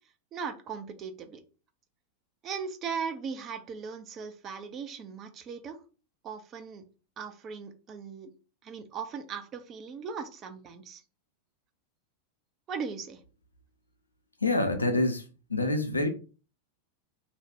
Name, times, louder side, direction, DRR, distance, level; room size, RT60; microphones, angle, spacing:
voice 1, 0.3-1.4 2.4-5.8 6.2-6.8 7.2-8.3 8.6-11.0 12.7-13.2, right 6 dB, 30° right, 0.4 m, -38 dB
voice 2, 14.4-15.2 15.5-16.1, left 2 dB, 80° left, 0.4 m, -26 dB
2.6 x 2.1 x 3.2 m
figure-of-eight pair, 90°, 0 cm